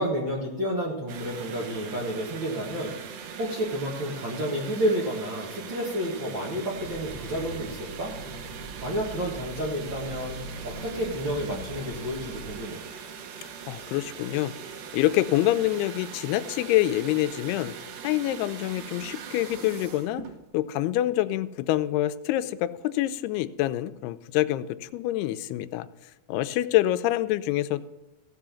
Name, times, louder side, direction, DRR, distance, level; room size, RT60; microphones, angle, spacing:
voice 1, 0.0-3.0 3.4-8.1 8.8-10.4 10.6-12.8, equal, 50° right, -3 dB, 1.5 m, -30 dB
sound 1, 1.1-20.4, right 7 dB, 75° right, 3.0 m, -41 dB
sound 2, 6.7-12.6, right 1 dB, 35° right, 5.7 m, -42 dB
voice 2, 13.7-14.5 14.9-17.7 18.0-20.2 20.5-25.9 26.3-27.8, left 14 dB, 90° left, 13 dB, 2.6 m, -26 dB
15.5 x 5.5 x 7.0 m, 1.1 s
omnidirectional pair, 4.5 m